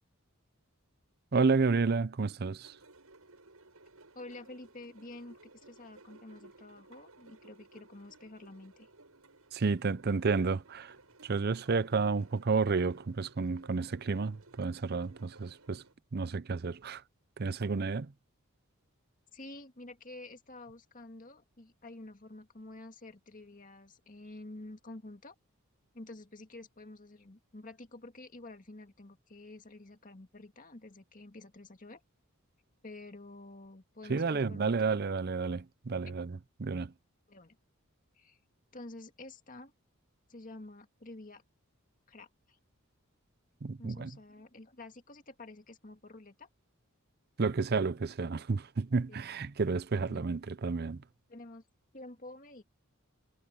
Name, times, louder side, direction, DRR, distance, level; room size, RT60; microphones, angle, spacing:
voice 1, 1.3-2.7 9.5-10.9 11.2-15.8 16.1-17.0 17.4-18.1 34.1-36.9 43.6-44.1 47.4-51.0, right 4 dB, 45° right, 0.6 m, -31 dB
sound 1, 2.6-15.9, right 2 dB, 80° right, 8.0 m, -59 dB
voice 2, 4.1-8.9 19.3-25.3 25.9-32.0 32.8-34.7 36.1-36.2 37.3-37.6 38.2-38.4 38.7-39.7 40.3-41.4 42.1-42.6 43.8-46.5 49.1-49.2 49.9-50.2 51.3-51.6 51.9-52.6, left 2 dB, 40° left, 2.0 m, -49 dB
head